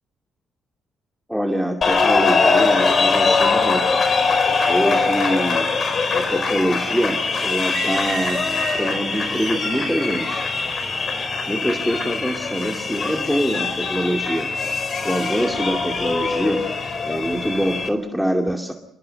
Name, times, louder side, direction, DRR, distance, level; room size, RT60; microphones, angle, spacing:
voice 1, 1.3-3.8 4.7-5.7 6.1-8.4 8.7-10.4 11.5-14.5 15.0-16.6 17.0-18.7, equal, ahead, 3 dB, 2.4 m, -24 dB
sound 1, 1.8-17.9, left 4 dB, 45° left, 4.8 m, -22 dB
sound 2, 7.6-11.9, right 8 dB, 60° right, 1.4 m, -35 dB
27.5 x 21.5 x 7.7 m, 0.83 s
cardioid pair, 90°, 0 cm